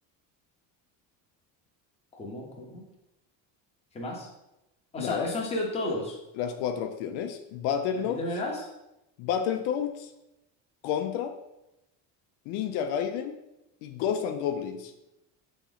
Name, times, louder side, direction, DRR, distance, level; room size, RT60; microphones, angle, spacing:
voice 1, 2.1-2.9 3.9-4.3 4.9-6.2 8.0-8.7, left 1 dB, 15° left, -2 dB, 0.8 m, -33 dB
voice 2, 5.0-5.3 6.4-8.2 9.2-10.1 10.8-11.3 12.5-13.4 13.8-14.9, left 8 dB, 80° left, 7 dB, 0.5 m, -30 dB
4.2 x 3.0 x 3.9 m, 0.91 s
cardioid pair, 160°, 39 cm